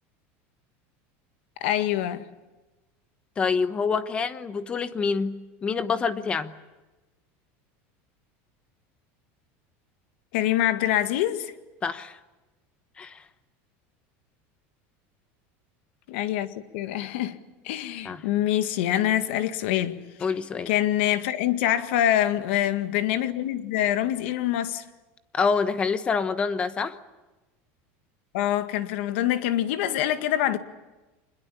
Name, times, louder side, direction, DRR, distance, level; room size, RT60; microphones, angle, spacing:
voice 1, 1.6-2.3 10.3-11.5 16.1-17.4 17.6-20.0 20.7-24.8 28.3-30.6, left 12 dB, 70° left, 1.9 m, -25 dB
voice 2, 3.4-6.5 11.8-12.2 13.0-13.2 18.0-18.2 20.2-20.7 25.3-27.0, left 5 dB, 15° left, 1.0 m, -26 dB
25.5 x 21.5 x 8.6 m
cardioid pair, 175°, 6 cm